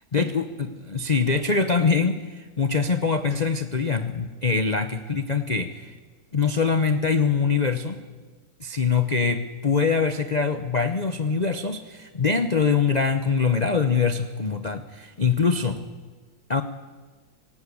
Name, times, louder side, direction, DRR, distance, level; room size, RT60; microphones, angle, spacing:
voice 1, 0.1-5.9 6.3-8.0 8.6-15.8 16.5-16.6, left 5 dB, 75° left, 9 dB, 0.4 m, -23 dB
18.5 x 18.0 x 8.4 m, 1.4 s
omnidirectional pair, 2.1 m